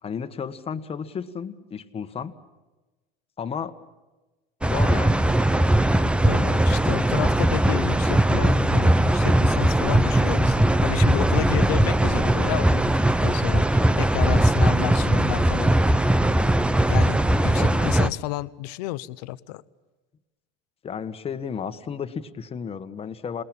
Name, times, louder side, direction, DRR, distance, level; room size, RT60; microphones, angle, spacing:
voice 1, 0.0-2.3 3.4-3.7 4.6-5.2 17.5-18.1 20.8-23.4, left 7 dB, 30° left, 9 dB, 1.6 m, -33 dB
sound 1, 4.6-18.1, right 1 dB, 5° right, 0.7 m, -20 dB
voice 2, 6.2-16.4 16.9-19.6, left 17 dB, 90° left, 15 dB, 0.9 m, -31 dB
sound 2, 8.3-16.7, left 2 dB, 10° left, 1.6 m, -37 dB
28.0 x 20.5 x 8.8 m, 1.2 s
supercardioid pair, 120°, 20 cm